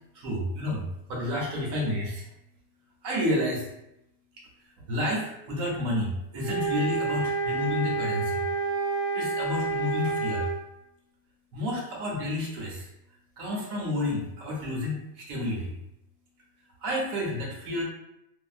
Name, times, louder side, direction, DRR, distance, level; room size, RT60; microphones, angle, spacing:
voice 1, 0.1-0.8 1.1-2.2 3.0-3.7 4.9-8.4 9.1-10.5 11.5-12.9 13.4-15.7 16.8-17.8, left 1 dB, 65° right, -3 dB, 1.1 m, -30 dB
sound 1, 6.4-10.6, right 3 dB, 85° right, 1.3 m, -29 dB
2.7 x 2.6 x 2.4 m, 0.85 s
omnidirectional pair, 1.6 m